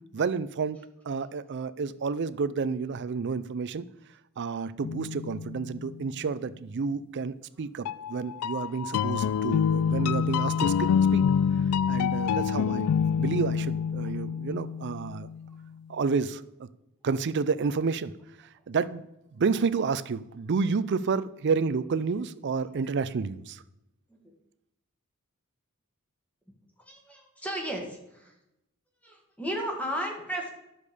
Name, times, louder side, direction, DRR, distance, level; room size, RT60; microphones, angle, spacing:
voice 1, 0.1-3.9 4.4-11.2 11.9-12.9 13.2-15.3 15.9-16.7 17.0-18.1 18.4-23.6, right 5 dB, 55° right, 15 dB, 0.4 m, -30 dB
sound 1, 4.8-6.0 7.8-15.5, left 7 dB, 85° left, 0.3 m, -27 dB
voice 2, 26.8-28.3 29.0-30.5, equal, 5° left, 1 dB, 1.7 m, -35 dB
11.0 x 6.8 x 4.9 m, 0.89 s
head